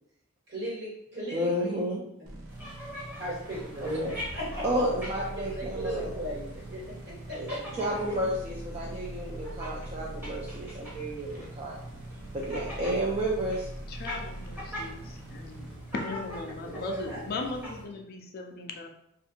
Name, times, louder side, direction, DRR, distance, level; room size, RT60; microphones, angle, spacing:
voice 1, 0.5-1.9 2.2-2.3 3.2-3.9 4.3-4.6 5.4-8.3 16.6-17.2, right 1 dB, 55° right, -6 dB, 1.3 m, -37 dB
voice 2, 1.3-2.0 3.8-4.1 4.6-6.1 7.3-7.5 7.8-11.8 12.3-13.7, equal, 30° right, -4 dB, 0.4 m, -31 dB
sound 1, 2.2-15.8, right 1 dB, 85° right, 0.6 m, -43 dB
sound 2, 2.5-17.8, equal, 10° right, 0.8 m, -43 dB
voice 3, 13.9-15.7 15.9-18.9, left 3 dB, 45° left, 3 dB, 0.3 m, -38 dB
2.5 x 2.3 x 2.7 m, 0.75 s
head